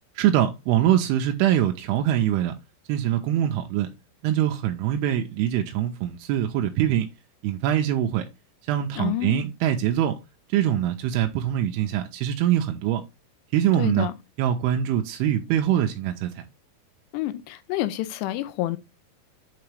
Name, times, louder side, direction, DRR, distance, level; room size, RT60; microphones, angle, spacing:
voice 1, 0.2-2.5 2.9-3.9 4.2-7.1 7.4-8.3 8.7-10.2 10.5-13.0 13.5-14.1 14.4-16.5, right 11 dB, 85° right, 2.5 m, -23 dB
voice 2, 9.0-9.4 13.8-14.1 17.1-18.8, left 15 dB, 90° left, 2.9 m, -28 dB
7.9 x 3.7 x 3.2 m
omnidirectional pair, 4.9 m